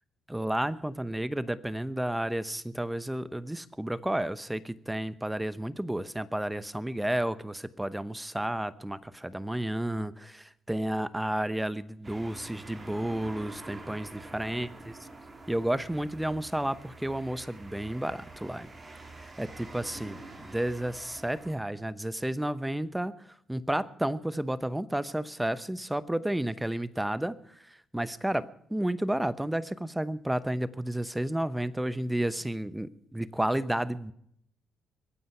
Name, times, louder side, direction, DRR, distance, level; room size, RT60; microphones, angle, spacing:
voice 1, 0.3-14.7 15.5-18.7 19.1-20.2 20.4-23.1 23.5-34.1, right 1 dB, 5° right, 16 dB, 0.9 m, -31 dB
sound 1, 12.0-21.5, right 2 dB, 25° right, 3.2 m, -47 dB
22.5 x 9.3 x 5.7 m, 0.67 s
cardioid pair, 90°, 0 cm